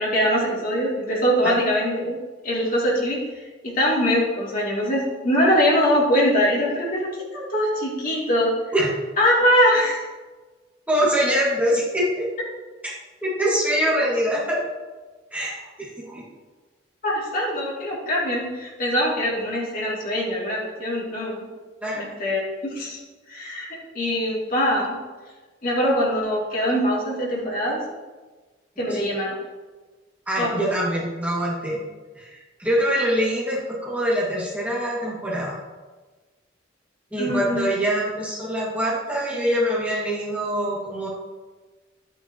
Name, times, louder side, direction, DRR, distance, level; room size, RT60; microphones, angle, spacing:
voice 1, 0.0-2.2 2.4-3.4 3.7-8.5 9.2-10.1 13.4-13.5 17.0-21.5 22.0-23.0 23.3-23.7 23.9-24.9 25.6-27.8 28.8-29.4 30.4-30.6 37.2-37.7, equal, 45° left, -5 dB, 2.9 m, -22 dB
voice 2, 10.9-12.3 13.2-14.6 15.3-16.2 21.8-22.0 28.9-29.1 30.3-31.8 32.2-35.6 37.1-41.1, equal, 10° right, -7 dB, 2.1 m, -24 dB
12.0 x 8.9 x 3.0 m, 1.3 s
head